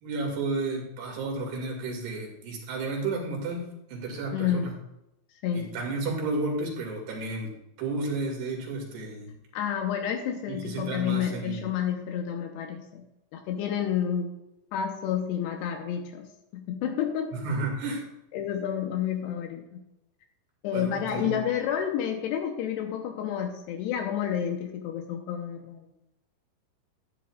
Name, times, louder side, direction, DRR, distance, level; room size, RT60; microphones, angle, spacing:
voice 1, 0.0-4.7 5.5-9.4 10.5-11.6 17.3-18.1 20.7-21.4, right 3 dB, 60° right, 0 dB, 3.9 m, -32 dB
voice 2, 4.3-4.7 5.4-5.7 9.5-13.0 13.3-14.3 14.7-16.3 16.5-17.3 18.3-19.6 20.6-25.9, left 9 dB, 90° left, 3 dB, 2.4 m, -30 dB
13.0 x 10.5 x 2.4 m, 0.88 s
omnidirectional pair, 6.0 m